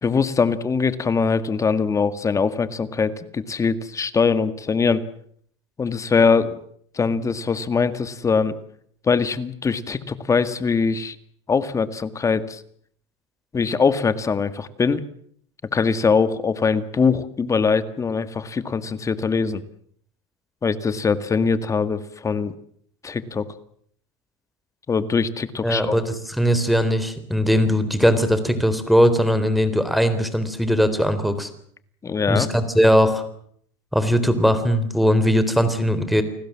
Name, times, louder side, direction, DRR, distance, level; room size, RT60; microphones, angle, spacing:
voice 1, 0.0-5.0 5.8-6.6 6.9-8.6 9.1-11.2 11.5-12.6 13.5-15.0 15.7-19.6 20.6-22.5 23.0-23.5 24.9-26.0 32.0-32.5, left 5 dB, 20° left, 12 dB, 1.9 m, -22 dB
voice 2, 25.6-31.5 32.3-33.2 33.9-36.2, equal, ahead, 12 dB, 3.8 m, -19 dB
29.5 x 19.0 x 7.5 m, 0.65 s
supercardioid pair, 120°, 15 cm